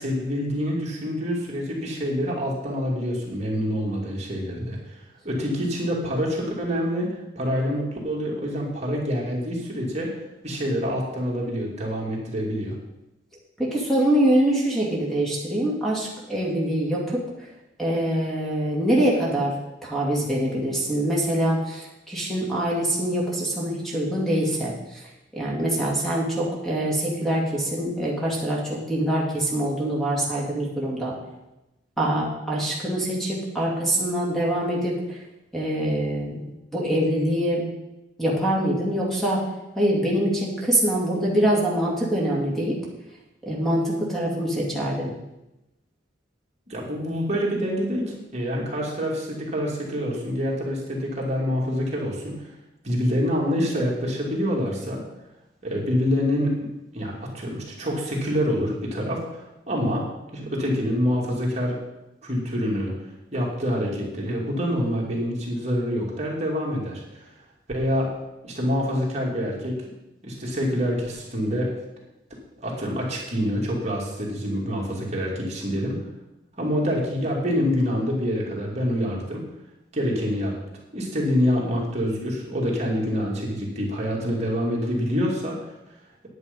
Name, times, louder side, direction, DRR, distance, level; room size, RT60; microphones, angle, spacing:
voice 1, 0.0-5.0 5.2-10.2 10.4-12.7 46.7-52.5 52.8-55.0 55.6-56.7 56.9-60.1 60.3-61.8 62.2-62.9 63.3-67.3 67.7-68.1 68.4-69.9 70.2-71.7 72.6-76.0 76.6-79.5 79.9-80.5 80.9-85.7, equal, 40° right, -3 dB, 2.6 m, -26 dB
voice 2, 13.6-17.5 17.8-19.5 19.8-25.0 25.3-31.1 32.0-35.2 35.5-37.7 38.2-39.4 39.7-42.8 43.4-45.1, right 1 dB, ahead, -4 dB, 2.5 m, -24 dB
9.5 x 9.5 x 5.4 m, 0.94 s
head